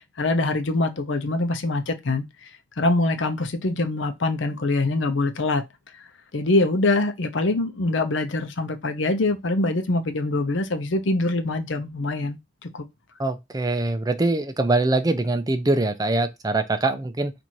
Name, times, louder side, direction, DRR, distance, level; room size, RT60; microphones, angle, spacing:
voice 1, 0.2-2.3 2.8-5.6 6.3-12.8, left 2 dB, 75° left, 0.7 m, -24 dB
voice 2, 13.2-17.3, right 2 dB, 20° right, 0.5 m, -23 dB
4.3 x 2.6 x 4.6 m
head